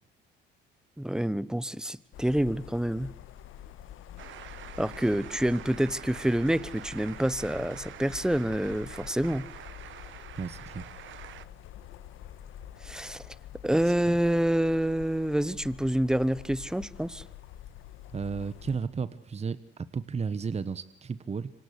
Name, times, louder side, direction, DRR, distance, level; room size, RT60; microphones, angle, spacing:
voice 1, 1.0-3.1 4.8-9.5 12.8-13.3 13.6-17.2, right 1 dB, 5° right, 19 dB, 1.2 m, -27 dB
sound 1, 2.1-18.8, left 11 dB, 85° left, 1.6 m, -47 dB
sound 2, 4.2-11.5, right 12 dB, 75° right, 1.3 m, -46 dB
voice 2, 10.4-10.9 13.7-14.2 18.1-21.5, right 5 dB, 30° right, 15 dB, 1.2 m, -34 dB
27.0 x 25.0 x 8.1 m, 0.77 s
cardioid pair, 90°, 20 cm